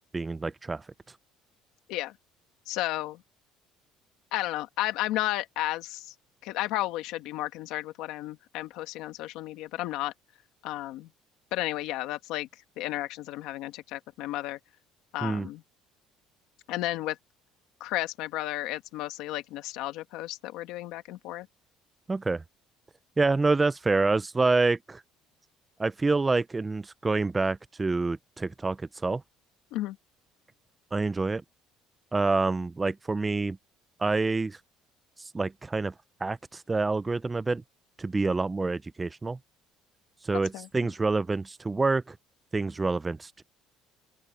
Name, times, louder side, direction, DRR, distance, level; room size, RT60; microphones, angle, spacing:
voice 1, 0.1-0.8 15.2-15.5 22.1-22.4 23.2-25.0 25.8-29.2 30.9-31.4 32.1-33.6 34.0-34.6 35.2-35.9 36.2-37.6 38.0-39.4 40.2-42.2 42.5-43.4, right 3 dB, 15° right, 0.4 m, -27 dB
voice 2, 2.7-3.2 4.3-6.1 6.4-10.1 10.6-11.1 11.5-12.5 12.8-14.6 15.1-15.6 16.7-17.2 17.8-21.5 29.7-30.0 40.5-40.7, left 16 dB, 75° left, 1.4 m, -33 dB
open air
cardioid pair, 135°, 0 cm